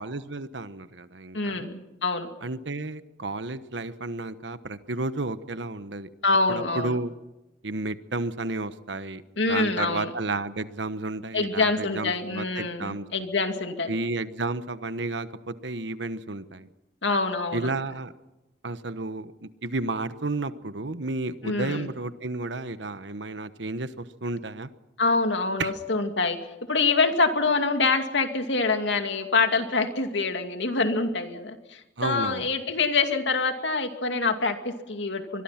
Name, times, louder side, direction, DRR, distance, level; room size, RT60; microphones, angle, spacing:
voice 1, 0.0-1.7 2.4-6.1 6.5-7.1 7.6-9.2 9.5-13.1 13.9-16.7 17.5-18.1 18.6-24.7 25.6-25.7 32.0-32.5, right 2 dB, 75° right, 12 dB, 1.2 m, -32 dB
voice 2, 1.3-2.3 6.2-7.0 9.4-10.1 11.3-13.9 17.0-17.7 21.4-21.9 25.0-26.4 26.7-35.4, left 3 dB, 80° left, 6 dB, 2.4 m, -25 dB
25.0 x 22.0 x 5.9 m, 1.0 s
head